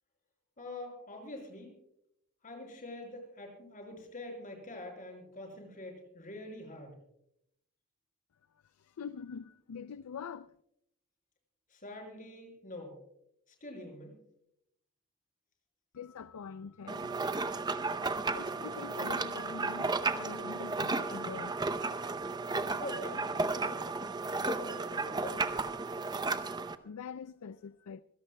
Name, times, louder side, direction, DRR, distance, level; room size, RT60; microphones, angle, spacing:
voice 1, 0.6-1.7 2.4-7.0 11.7-13.0 13.5-14.1 22.8-23.8 24.4-25.6, left 1 dB, 35° left, 5.4 m, -45 dB
voice 2, 8.7-10.5 15.9-22.2 26.8-28.0, left 6 dB, 80° left, 0.4 m, -45 dB
sound 1, 16.9-26.8, right 3 dB, 20° right, 0.6 m, -34 dB
26.0 x 17.0 x 2.2 m
head